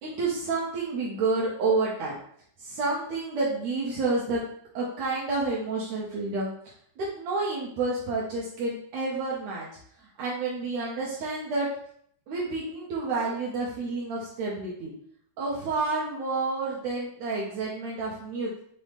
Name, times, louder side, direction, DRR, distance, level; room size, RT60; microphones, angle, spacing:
voice 1, 0.0-2.2 2.6-4.4 4.7-6.5 7.0-9.7 10.2-11.7 12.3-14.9 15.4-18.6, right 3 dB, 80° right, -6 dB, 1.6 m, -29 dB
5.6 x 2.0 x 3.2 m, 0.65 s
omnidirectional pair, 3.8 m